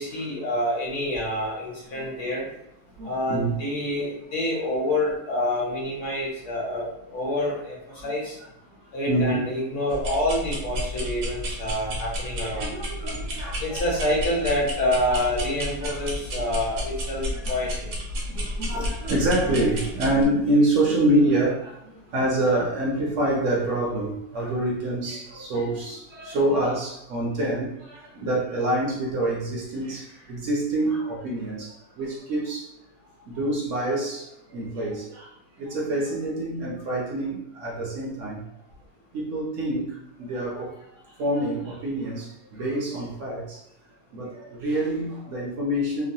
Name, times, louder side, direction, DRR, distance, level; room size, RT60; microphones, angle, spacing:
voice 1, 0.0-2.4 3.0-7.8 8.0-8.4 8.9-12.7 13.6-17.9, left 1 dB, 60° left, -4 dB, 1.2 m, -27 dB
voice 2, 3.0-3.6 4.0-4.1 8.0-8.1 9.1-9.5 12.4-13.8 15.1-15.2 15.8-16.0 16.3-16.5 17.3-17.5 18.1-32.7 33.3-35.3 35.6-38.4 39.1-40.8 41.2-43.6 44.1-46.1, right 1 dB, 65° right, -2 dB, 0.9 m, -26 dB
sound 1, 9.9-20.2, equal, 80° right, 1.2 m, -32 dB
3.0 x 2.1 x 2.6 m, 0.80 s
omnidirectional pair, 1.6 m